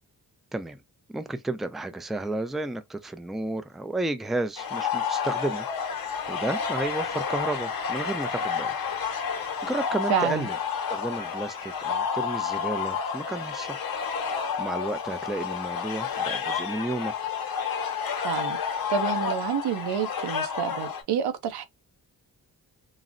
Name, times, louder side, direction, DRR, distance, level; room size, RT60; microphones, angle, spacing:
voice 1, 1.1-5.7 6.0-8.8 9.3-10.5 10.9-13.9 14.6-17.1, right 2 dB, ahead, 0.4 m, -32 dB
sound 1, 4.6-21.0, left 6 dB, 65° left, 0.8 m, -30 dB
voice 2, 10.1-10.5 18.2-18.6 18.9-21.6, right 8 dB, 80° right, 0.7 m, -28 dB
3.8 x 2.0 x 2.5 m
cardioid pair, 60°, 38 cm